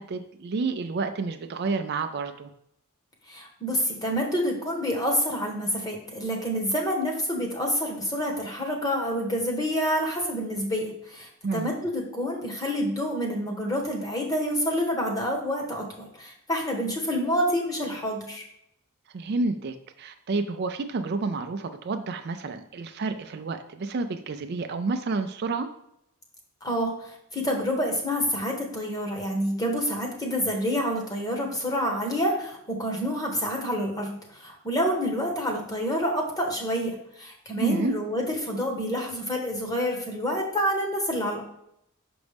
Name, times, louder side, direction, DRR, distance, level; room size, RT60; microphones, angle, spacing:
voice 1, 0.0-2.5 11.4-11.7 19.1-25.7 37.6-37.9, right 3 dB, 50° right, 7 dB, 0.4 m, -30 dB
voice 2, 3.3-18.4 26.6-41.4, equal, 20° left, 0 dB, 1.2 m, -28 dB
6.0 x 5.2 x 3.4 m, 0.75 s
head